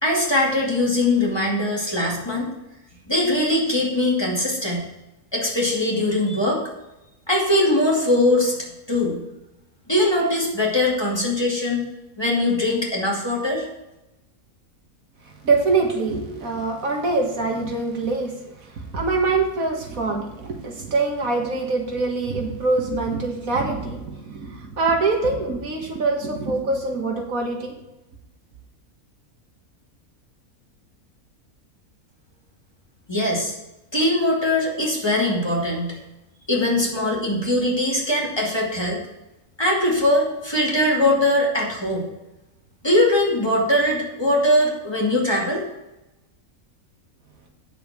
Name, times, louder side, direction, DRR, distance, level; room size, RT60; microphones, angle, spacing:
voice 1, 0.0-2.5 3.1-4.8 5.3-6.6 7.3-8.6 8.9-9.2 9.9-11.8 12.2-13.7 33.1-33.5 33.9-36.0 36.5-39.0 39.6-42.1 42.8-45.6, left 1 dB, 15° left, -3 dB, 2.5 m, -21 dB
voice 2, 15.4-27.7, right 3 dB, 70° right, 2 dB, 2.1 m, -24 dB
8.7 x 6.9 x 6.2 m, 0.94 s
omnidirectional pair, 1.5 m